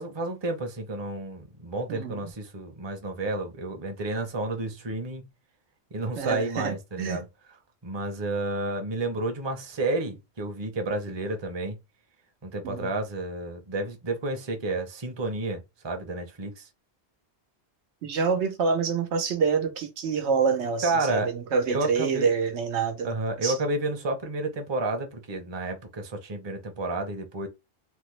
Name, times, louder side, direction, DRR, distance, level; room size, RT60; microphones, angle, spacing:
voice 1, 0.0-5.2 5.9-7.2 7.8-11.8 12.4-16.7 20.8-21.3 21.7-22.3 23.0-27.5, right 2 dB, 30° right, 0.6 m, -31 dB
voice 2, 1.9-2.2 6.2-7.3 12.6-12.9 18.0-23.1 23.4-23.6, right 5 dB, 90° right, 1.0 m, -27 dB
3.5 x 2.0 x 3.1 m
omnidirectional pair, 1.1 m